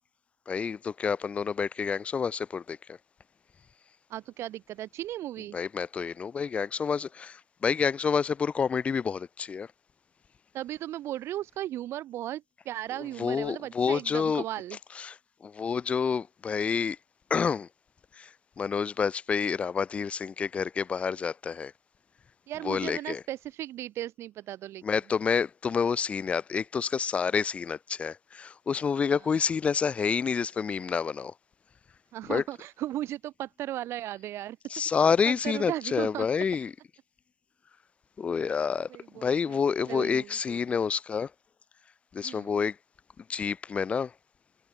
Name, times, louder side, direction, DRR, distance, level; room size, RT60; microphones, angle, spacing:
voice 1, 0.5-3.0 5.5-9.7 13.2-14.4 15.0-15.2 15.4-17.0 17.3-17.7 18.2-18.3 18.6-21.7 22.6-23.2 24.8-31.3 32.3-32.4 34.7-36.7 38.2-41.3 42.1-42.8 43.3-44.1, left 6 dB, 15° left, 0.8 m, -28 dB
voice 2, 4.1-5.6 10.5-14.8 22.5-24.8 32.1-34.6 35.3-36.3 38.9-39.6 39.9-40.6 42.2-42.5, right 13 dB, 35° right, 2.5 m, -36 dB
cardioid pair, 170°, 7 cm